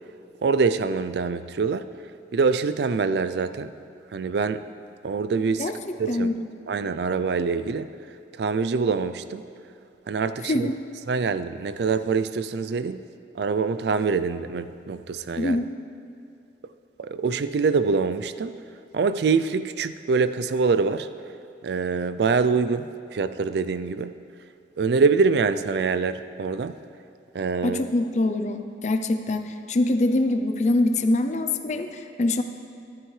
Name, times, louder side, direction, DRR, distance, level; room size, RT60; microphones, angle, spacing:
voice 1, 0.4-1.9 2.3-3.7 4.1-4.6 5.0-5.7 6.0-6.3 6.7-7.9 8.4-9.4 10.1-10.7 11.1-13.0 13.3-15.6 17.0-18.5 18.9-21.1 21.6-24.1 24.8-26.8 27.3-27.8, right 4 dB, 65° right, 12 dB, 0.4 m, -24 dB
voice 2, 5.6-6.5 10.4-10.7 15.4-15.7 27.6-32.4, left 2 dB, 40° left, 7 dB, 0.5 m, -24 dB
12.0 x 11.5 x 3.2 m, 2.5 s
head